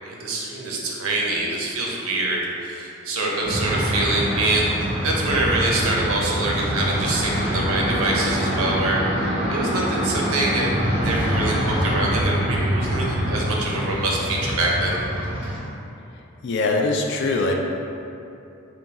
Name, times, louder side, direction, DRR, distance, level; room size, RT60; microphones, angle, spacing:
voice 1, 0.0-9.0 9.5-15.0, right 2 dB, 85° right, -2 dB, 0.6 m, -25 dB
sound 1, 3.4-15.6, equal, 25° right, 0.8 m, -25 dB
voice 2, 16.4-17.5, left 3 dB, 55° left, 1 dB, 0.3 m, -22 dB
3.6 x 2.3 x 4.0 m, 2.7 s
head